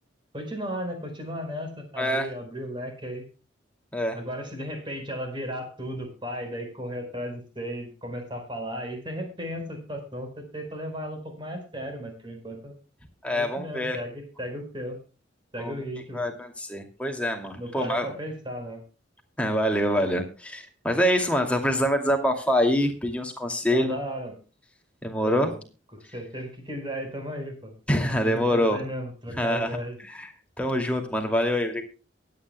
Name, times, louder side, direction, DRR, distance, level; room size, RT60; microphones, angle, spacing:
voice 1, 0.3-3.2 4.1-12.7 13.3-15.0 15.5-16.2 17.6-18.8 19.7-19.8 23.7-24.4 25.2-25.5 25.9-27.7 28.1-30.0, equal, 25° right, 4 dB, 4.6 m, -35 dB
voice 2, 2.0-2.3 3.9-4.2 13.2-14.0 15.6-15.8 16.1-18.1 19.4-24.0 25.0-25.5 27.9-28.8 29.3-31.8, equal, 5° left, 3 dB, 2.4 m, -25 dB
23.5 x 9.7 x 2.2 m, 0.34 s
head